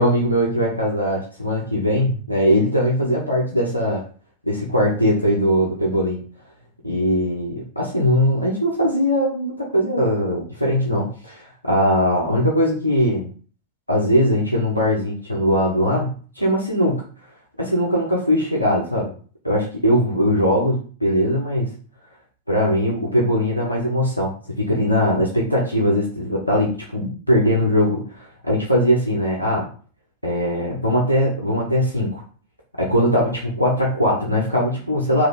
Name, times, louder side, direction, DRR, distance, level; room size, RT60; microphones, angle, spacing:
voice 1, 0.0-4.0 4.4-6.2 6.8-13.3 13.9-17.0 17.6-19.1 19.4-21.7 22.5-29.7 30.2-32.2 32.8-35.3, equal, 90° left, -3 dB, 0.8 m, -20 dB
3.2 x 2.7 x 3.9 m, 0.41 s
figure-of-eight pair, 90°, 0 cm